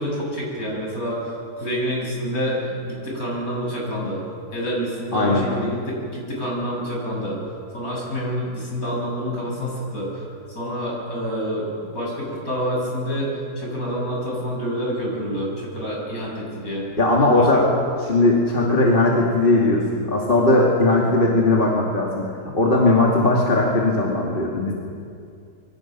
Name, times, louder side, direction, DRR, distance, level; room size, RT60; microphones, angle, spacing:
voice 1, 0.0-4.2 4.5-7.4 7.7-13.3 13.6-16.8 17.2-17.6, equal, 65° left, -3 dB, 7.4 m, -27 dB
voice 2, 5.1-5.5 17.0-17.7 18.1-22.3 22.5-24.7, left 2 dB, 35° left, -2 dB, 2.5 m, -18 dB
25.5 x 23.5 x 6.1 m, 2.4 s
omnidirectional pair, 1.7 m